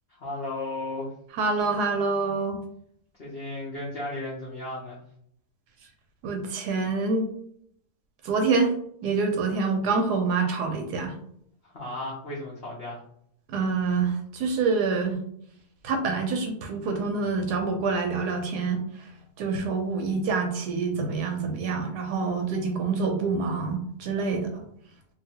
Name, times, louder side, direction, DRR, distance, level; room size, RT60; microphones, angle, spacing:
voice 1, 0.1-1.1 3.2-5.0 11.6-13.0, left 2 dB, 80° left, -5 dB, 0.5 m, -34 dB
voice 2, 1.3-2.6 6.2-7.3 8.2-8.7 9.0-11.1 13.5-15.2 15.8-19.1 19.4-24.6, right 4 dB, 70° right, 3 dB, 1.0 m, -26 dB
2.9 x 2.7 x 2.8 m, 0.67 s
omnidirectional pair, 2.0 m